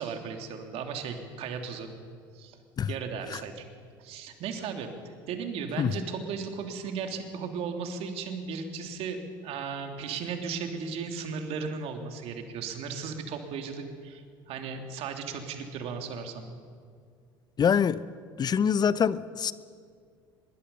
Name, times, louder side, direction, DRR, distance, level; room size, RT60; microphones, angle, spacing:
voice 1, 0.0-1.9 2.3-2.6 2.9-3.6 4.0-4.9 5.3-16.5, right 5 dB, 60° right, 4 dB, 2.9 m, -36 dB
voice 2, 17.6-18.0 18.4-19.5, left 7 dB, 35° left, 17 dB, 0.8 m, -24 dB
24.0 x 22.0 x 5.6 m, 2.2 s
hypercardioid pair, 65°, 12 cm